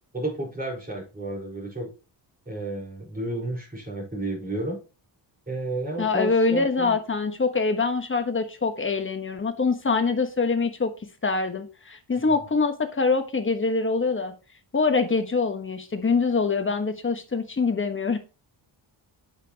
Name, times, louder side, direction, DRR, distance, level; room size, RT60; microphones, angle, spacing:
voice 1, 0.1-1.9 2.5-4.8 5.5-6.9, right 1 dB, 20° right, -3 dB, 4.5 m, -32 dB
voice 2, 6.0-10.9 11.2-14.3 14.7-18.2, left 4 dB, 25° left, 7 dB, 1.3 m, -24 dB
8.1 x 5.9 x 2.9 m, 0.33 s
cardioid pair, 80°, 46 cm